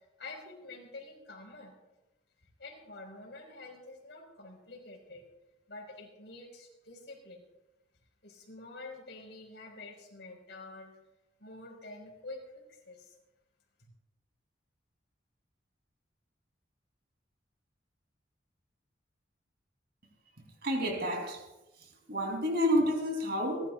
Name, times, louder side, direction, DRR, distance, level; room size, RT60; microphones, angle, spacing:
voice 1, 0.2-1.7 2.6-5.2 5.7-7.5 8.2-10.9 11.4-13.1, left 2 dB, 70° left, -1 dB, 5.0 m, -47 dB
voice 2, 20.6-21.4 22.1-23.7, equal, 60° right, 1 dB, 3.4 m, -29 dB
30.0 x 12.5 x 2.5 m, 0.99 s
head